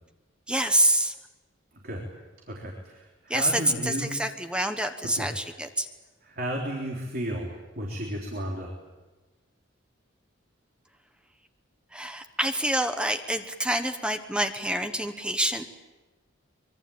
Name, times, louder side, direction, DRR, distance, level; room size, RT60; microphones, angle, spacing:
voice 1, 0.5-1.1 3.3-5.9 11.9-15.7, right 1 dB, 5° right, 7 dB, 1.2 m, -27 dB
voice 2, 2.5-4.1 5.2-5.3 6.2-8.7, equal, 50° right, -1 dB, 3.7 m, -33 dB
24.5 x 23.5 x 8.7 m, 1.2 s
head